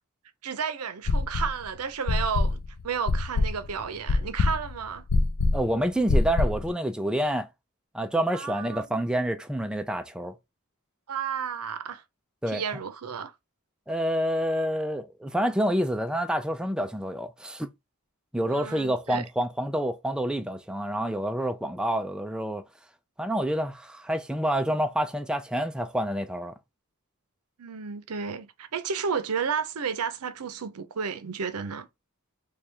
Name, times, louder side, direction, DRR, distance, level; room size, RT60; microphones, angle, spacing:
voice 1, 0.4-5.0 8.3-8.8 11.1-12.0 12.5-13.3 18.5-19.2 27.6-31.9, right 6 dB, 75° right, 0.6 m, -32 dB
sound 1, 1.1-1.6 2.1-6.7, left 3 dB, 70° left, 0.5 m, -24 dB
voice 2, 5.5-7.5 7.9-10.3 12.4-12.6 13.9-17.7 18.3-22.6 23.2-26.6, equal, 5° right, 0.3 m, -28 dB
3.3 x 2.3 x 4.4 m
head